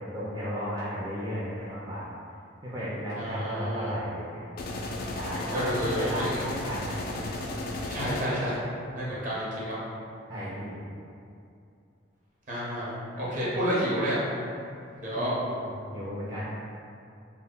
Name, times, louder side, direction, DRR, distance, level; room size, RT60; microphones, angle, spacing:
voice 1, 0.0-2.1 2.6-4.4 5.1-7.3 10.3-10.8 15.2-16.5, equal, 20° right, -10 dB, 0.4 m, -34 dB
voice 2, 3.2-3.9 5.5-6.4 7.9-8.6 9.0-9.8 12.5-14.2 15.0-15.4, equal, 45° right, -8 dB, 0.7 m, -30 dB
sound 1, 4.6-8.6, left 2 dB, 50° left, 0.3 m, -34 dB
2.1 x 2.1 x 3.6 m, 2.5 s
head